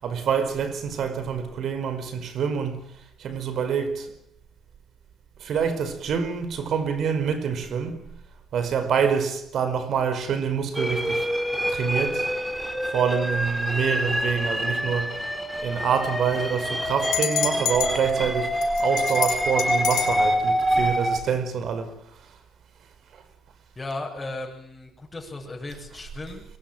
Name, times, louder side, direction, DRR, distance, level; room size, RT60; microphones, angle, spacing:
voice 1, 0.0-2.9 3.2-4.1 5.4-8.0 8.5-11.3 11.7-12.3 12.9-15.2 15.6-22.0, right 7 dB, 65° right, 5.0 m, -26 dB
sound 1, 10.7-21.2, equal, 5° right, 4.5 m, -26 dB
sound 2, 17.0-17.9 18.6-20.2, left 12 dB, 80° left, 6.1 m, -27 dB
voice 2, 23.8-26.5, left 2 dB, 20° left, 7.6 m, -36 dB
24.0 x 22.0 x 9.3 m
cardioid pair, 85°, 0 cm